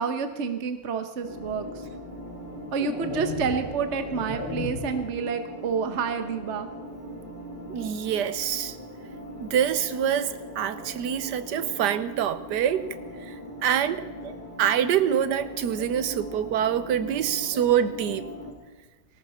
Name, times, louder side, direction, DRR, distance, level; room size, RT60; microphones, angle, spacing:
voice 1, 0.0-1.7 2.7-6.7 14.2-14.3, right 5 dB, 45° right, 8 dB, 1.2 m, -29 dB
sound 1, 1.2-18.5, equal, 25° left, 2.9 m, -40 dB
sound 2, 1.4-1.6 2.3-5.1, left 2 dB, 75° left, 3.1 m, -36 dB
voice 2, 7.7-8.8 9.4-13.0 13.2-13.3 13.6-14.0 14.6-18.3, right 9 dB, 75° right, 13 dB, 1.4 m, -25 dB
19.0 x 17.5 x 4.2 m, 1.3 s
omnidirectional pair, 1.8 m